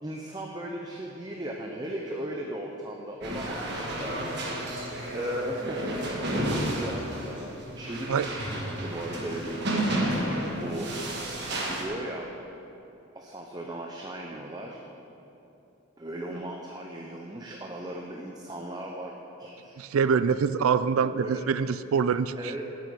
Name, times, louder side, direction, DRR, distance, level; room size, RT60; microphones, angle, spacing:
voice 1, 0.0-4.4 5.1-5.8 6.4-9.6 10.6-10.9 11.3-12.3 13.1-14.8 16.0-19.1 19.4-19.8 21.0-21.4 22.4-22.6, right 1 dB, 20° right, 0 dB, 0.6 m, -37 dB
sound 1, 3.2-11.8, right 1 dB, 55° right, 1.5 m, -31 dB
voice 2, 19.8-22.3, right 6 dB, 85° right, 14 dB, 0.4 m, -24 dB
8.1 x 7.7 x 8.5 m, 2.9 s
head